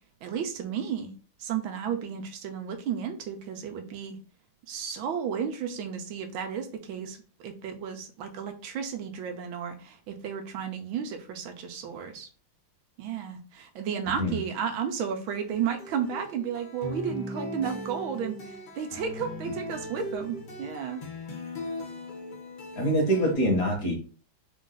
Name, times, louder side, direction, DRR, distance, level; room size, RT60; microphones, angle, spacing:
voice 1, 0.2-1.1 1.4-4.2 4.7-12.3 13.0-18.4 18.8-21.0, right 7 dB, 80° right, 6 dB, 1.5 m, -33 dB
sound 1, 15.3-23.3, left 1 dB, 85° left, 0.4 m, -39 dB
voice 2, 22.7-23.9, right 1 dB, 45° left, 0 dB, 1.6 m, -24 dB
4.3 x 2.5 x 3.8 m, 0.37 s
omnidirectional pair, 2.2 m